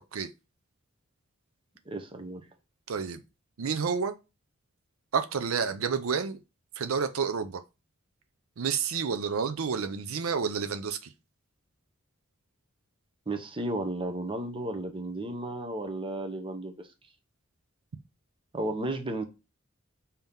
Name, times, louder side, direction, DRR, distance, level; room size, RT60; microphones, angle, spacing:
voice 1, 1.9-2.4 13.3-16.7 18.5-19.2, right 1 dB, 25° right, 0.8 m, -33 dB
voice 2, 2.9-3.2 3.6-4.1 5.1-6.4 6.8-7.6 8.6-11.1, right 6 dB, 85° right, 0.5 m, -29 dB
5.4 x 2.9 x 3.5 m
head